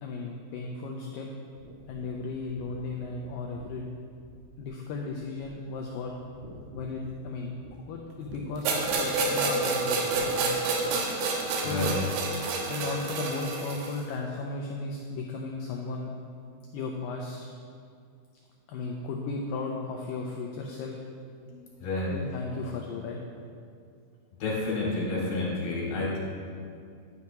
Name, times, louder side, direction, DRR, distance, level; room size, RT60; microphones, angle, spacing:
voice 1, 0.0-1.3 1.9-3.9 4.6-6.1 6.7-7.5 7.9-10.8 11.5-12.0 12.7-16.1 16.7-17.5 18.7-21.0 22.1-23.2, left 3 dB, 85° left, 0 dB, 1.9 m, -35 dB
sound 1, 1.6-4.8 5.1-5.7 6.0-7.7 8.2-8.4 8.8-9.3 10.1-10.4, right 2 dB, 60° right, 3.1 m, -48 dB
sound 2, 8.6-14.0, right 3 dB, 75° right, 2.7 m, -28 dB
voice 2, 11.6-12.0 21.5-22.1 24.4-26.2, left 2 dB, 65° left, -5 dB, 4.1 m, -30 dB
11.0 x 9.5 x 3.0 m, 2.3 s
omnidirectional pair, 4.7 m